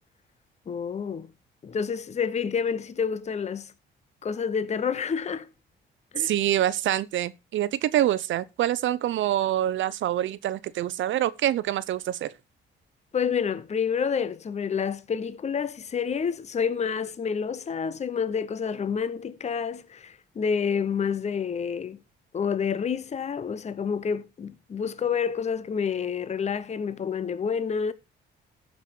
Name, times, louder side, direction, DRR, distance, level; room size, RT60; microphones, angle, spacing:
voice 1, 0.7-1.3 1.6-3.7 4.2-5.5 6.1-6.3 13.1-22.0 22.3-27.9, left 6 dB, 35° left, 0.8 m, -28 dB
voice 2, 6.2-12.3, right 12 dB, 75° right, 0.7 m, -26 dB
14.5 x 5.5 x 4.4 m
cardioid pair, 90°, 20 cm